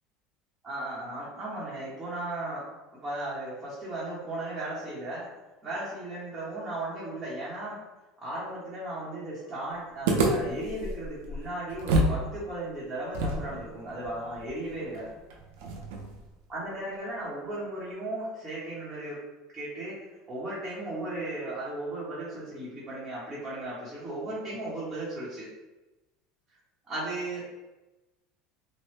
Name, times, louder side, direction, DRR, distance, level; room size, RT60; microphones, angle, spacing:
voice 1, 0.6-5.3 5.6-7.8 8.2-15.1 16.5-19.2 19.5-20.0 20.3-25.5 26.8-27.5, right 1 dB, 20° right, -10 dB, 0.9 m, -36 dB
sound 1, 10.1-12.2 12.5-12.6 13.1-16.3, right 2 dB, 80° right, 0.5 m, -29 dB
3.1 x 2.1 x 3.1 m, 1.1 s
supercardioid pair, 135°, 0 cm